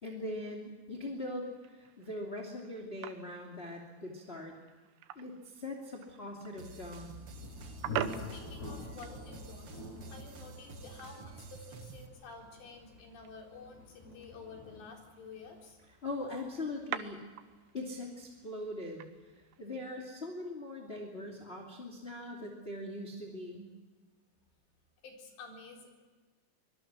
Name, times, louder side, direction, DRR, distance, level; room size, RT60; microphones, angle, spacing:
voice 1, 0.0-4.5 5.1-7.1 15.9-17.2 17.7-23.7, left 1 dB, 15° left, -1 dB, 2.3 m, -41 dB
sound 1, 1.4-20.0, right 12 dB, 85° right, 3.3 m, -47 dB
Thunder, 6.5-18.1, left 1 dB, 70° left, 8.7 m, -47 dB
sound 2, 6.6-12.1, right 3 dB, 50° right, 1.8 m, -49 dB
voice 2, 8.1-9.8 10.1-15.8 25.0-25.9, left 4 dB, 85° left, 1 dB, 6.4 m, -51 dB
24.5 x 22.5 x 6.3 m, 1.3 s
omnidirectional pair, 4.9 m